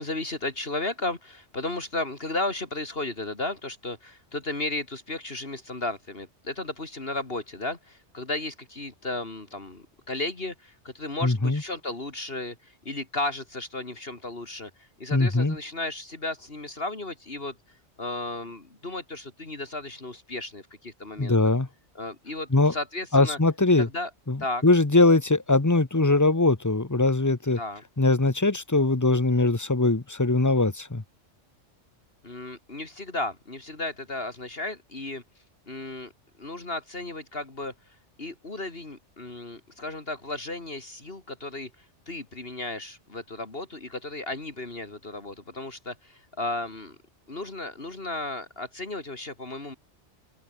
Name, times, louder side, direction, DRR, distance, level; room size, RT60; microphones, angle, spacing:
voice 1, 0.0-14.7 15.0-17.5 18.0-21.3 22.0-23.4 23.8-24.1 24.4-24.6 27.5-27.8 32.2-35.2 35.7-36.1 36.4-37.7 38.2-41.7 42.1-47.0 47.3-49.8, left 2 dB, 55° left, 3.2 m, -34 dB
voice 2, 11.2-11.6 15.1-15.6 21.2-21.7 22.5-22.7 23.1-23.9 24.3-27.6 28.0-31.0, left 2 dB, 15° left, 1.1 m, -21 dB
omnidirectional pair, 1.2 m